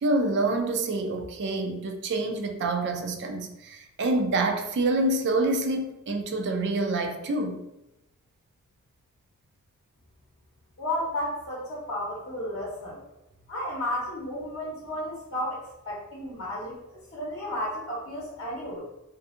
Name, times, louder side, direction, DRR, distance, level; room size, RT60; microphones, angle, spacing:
voice 1, 0.0-7.6, right 2 dB, 50° right, 0.4 m, -27 dB
voice 2, 10.8-13.0 13.5-18.8, left 1 dB, 60° left, 0.7 m, -33 dB
2.6 x 2.5 x 2.4 m
head